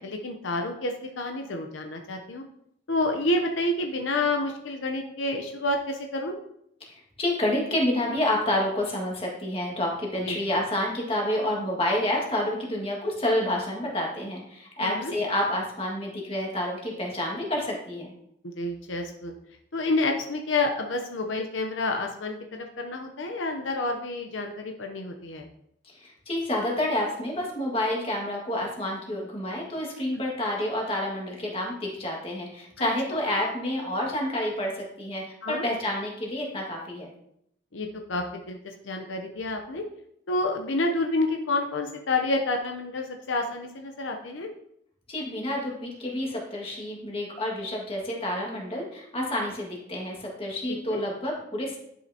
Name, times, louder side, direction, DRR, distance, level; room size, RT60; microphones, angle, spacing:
voice 1, 0.0-2.4 2.9-6.3 10.3-10.4 14.8-15.1 18.4-19.3 19.7-25.4 32.8-33.2 35.4-35.7 37.7-39.8 40.3-44.5 50.7-51.0, left 2 dB, 85° left, 4 dB, 0.8 m, -29 dB
voice 2, 6.8-18.1 26.0-37.1 45.1-51.8, left 1 dB, 30° left, -2 dB, 1.9 m, -29 dB
10.5 x 5.6 x 2.9 m, 0.75 s
head